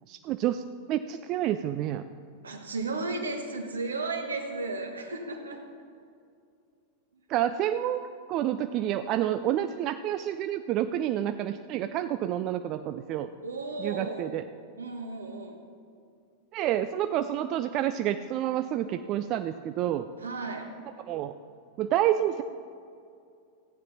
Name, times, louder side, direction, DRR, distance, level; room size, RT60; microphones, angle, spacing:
voice 1, 0.1-0.6 0.9-2.0 7.3-8.0 8.3-13.3 13.8-14.5 16.5-20.1 21.1-21.3 21.8-22.4, right 11 dB, 40° right, 9 dB, 0.3 m, -29 dB
voice 2, 2.4-5.6 13.4-14.4 14.8-15.6 20.2-20.7, right 3 dB, 70° right, 4 dB, 1.2 m, -34 dB
14.5 x 9.2 x 4.1 m, 2.3 s
figure-of-eight pair, 90°, 0 cm